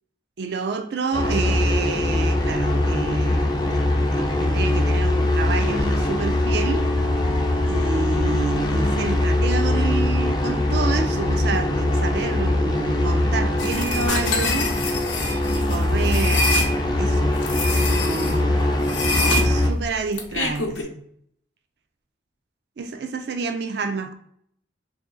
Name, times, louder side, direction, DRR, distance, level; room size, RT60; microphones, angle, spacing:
voice 1, 0.4-6.9 7.6-14.7 15.4-17.4 17.8-18.6 19.4-21.0 22.8-24.1, right 4 dB, 60° right, 0.4 m, -29 dB
sound 1, 1.1-19.7, left 1 dB, 20° left, 0.4 m, -22 dB
sound 2, 13.6-16.7 17.4-18.4 18.8-20.8, left 2 dB, 85° left, 0.6 m, -25 dB
3.0 x 2.6 x 3.6 m
head